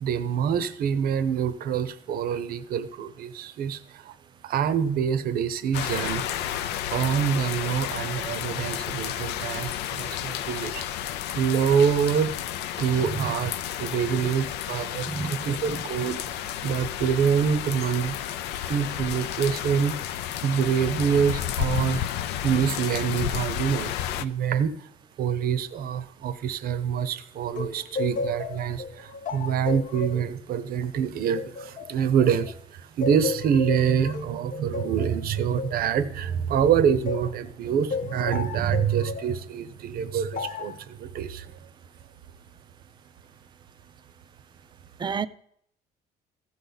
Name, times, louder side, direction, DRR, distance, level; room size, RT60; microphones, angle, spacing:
voice 1, 0.0-4.1 4.4-6.2 6.9-10.9 11.3-12.3 12.8-16.2 16.6-18.2 18.7-20.0 20.4-24.7 25.2-32.5 33.0-41.5, right 7 dB, 60° right, 0.7 m, -26 dB
sound 1, 5.7-24.2, left 11 dB, 85° left, 0.5 m, -32 dB
voice 2, 13.0-13.3 14.2-14.3 15.0-15.3 15.6-15.8 45.0-45.3, right 5 dB, 25° right, 0.4 m, -30 dB
sound 2, 27.6-32.6 33.0-37.4 37.9-39.3 40.3-40.8, left 4 dB, 50° left, 0.7 m, -34 dB
14.5 x 7.0 x 4.0 m
cardioid pair, 110°, 17 cm